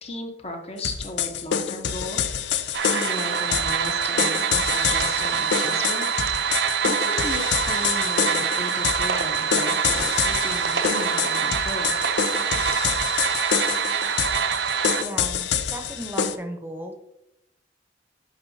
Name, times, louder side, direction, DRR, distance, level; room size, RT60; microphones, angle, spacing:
voice 1, 0.0-6.2 6.8-11.9, left 2 dB, 35° left, 3 dB, 1.0 m, -35 dB
sound 1, 0.8-16.4, left 7 dB, 85° left, 0.5 m, -27 dB
sound 2, 2.7-15.0, right 7 dB, 85° right, 0.6 m, -25 dB
voice 2, 15.0-16.9, right 1 dB, 10° right, 5 dB, 0.8 m, -35 dB
8.6 x 5.5 x 2.8 m, 0.83 s
head